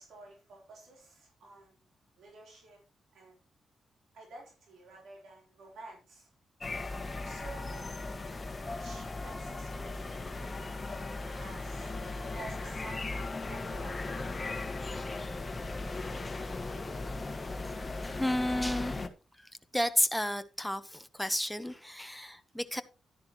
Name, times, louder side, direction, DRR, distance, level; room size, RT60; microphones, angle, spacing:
voice 1, 0.0-1.7 2.2-2.8 3.1-3.4 4.1-6.3 7.2-7.9 8.6-10.8 11.3-12.0 12.3-14.0, right 2 dB, 75° right, 3.6 m, -51 dB
sound 1, 6.6-19.1, left 3 dB, 35° left, 1.4 m, -37 dB
voice 2, 18.0-18.9 19.7-22.8, left 1 dB, 5° left, 1.0 m, -31 dB
12.0 x 10.5 x 3.0 m
cardioid pair, 60°, 0 cm